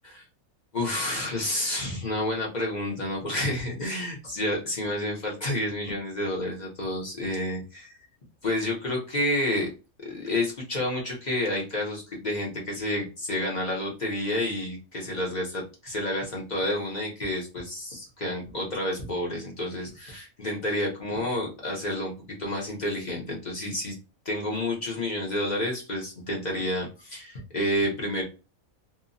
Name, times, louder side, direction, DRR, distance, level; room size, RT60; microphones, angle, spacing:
voice 1, 0.7-7.6 8.4-9.7 10.0-22.1 22.4-23.9 24.2-28.2, left 1 dB, 40° left, -2 dB, 0.7 m, -29 dB
2.9 x 2.2 x 2.6 m, 0.30 s
omnidirectional pair, 1.5 m